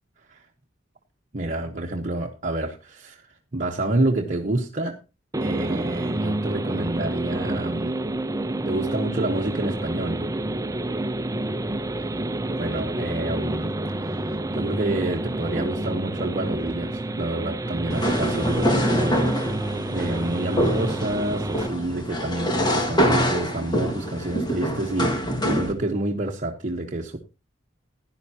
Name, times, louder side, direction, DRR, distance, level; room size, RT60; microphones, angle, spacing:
voice 1, 1.3-3.3 3.5-5.0 5.4-8.0 8.6-10.3 12.0-12.1 12.5-13.7 14.0-14.2 14.5-19.5 19.9-27.2, right 2 dB, 40° right, 1.2 m, -28 dB
sound 1, 5.3-21.7, right 1 dB, 20° right, 0.6 m, -28 dB
sound 2, 17.9-25.7, equal, 25° left, 1.9 m, -25 dB
16.0 x 11.0 x 2.9 m
head